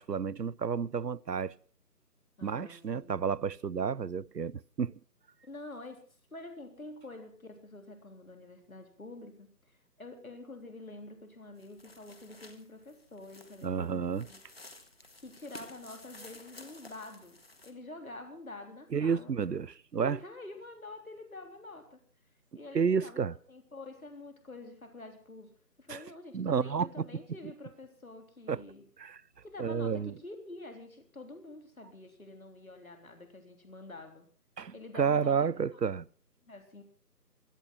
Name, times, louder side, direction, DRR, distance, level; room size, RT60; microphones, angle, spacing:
voice 1, 0.0-1.5 2.4-4.9 13.6-14.3 18.9-20.2 22.7-23.3 25.9-26.0 26.3-27.1 28.5-28.6 29.0-29.2 29.6-30.1 34.6-36.1, right 6 dB, 80° right, 0.7 m, -31 dB
voice 2, 2.4-3.2 5.4-14.4 15.2-17.4 17.6-19.3 20.0-22.0 22.5-23.2 23.5-28.9 29.4-34.3 34.7-35.8 36.5-36.8, left 2 dB, 60° left, 3.7 m, -47 dB
sound 1, 11.6-17.7, left 2 dB, 40° left, 1.7 m, -53 dB
16.5 x 13.0 x 5.5 m
figure-of-eight pair, 160°, 48 cm